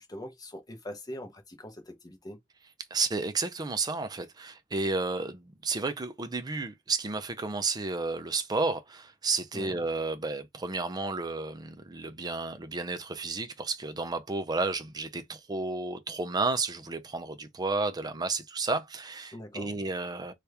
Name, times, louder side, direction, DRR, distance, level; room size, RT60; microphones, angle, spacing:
voice 1, 0.0-2.4 9.5-9.8 19.3-19.7, left 1 dB, 20° left, 0.8 m, -42 dB
voice 2, 2.9-20.3, right 3 dB, 20° right, 0.4 m, -32 dB
2.9 x 2.4 x 3.3 m
head